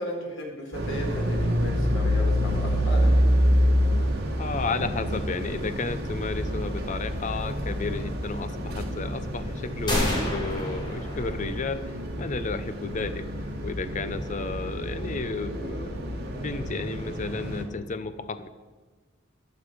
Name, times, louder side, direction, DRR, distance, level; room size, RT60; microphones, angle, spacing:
voice 1, 0.0-3.3, equal, 75° left, -1 dB, 4.4 m, -35 dB
sound 1, 0.7-17.6, equal, 55° right, 2.4 m, -27 dB
voice 2, 4.4-13.3 13.6-18.5, left 3 dB, 40° left, 11 dB, 0.6 m, -32 dB
sound 2, 9.9-11.8, equal, 25° left, 3.9 m, -29 dB
14.5 x 11.5 x 5.1 m, 1.3 s
head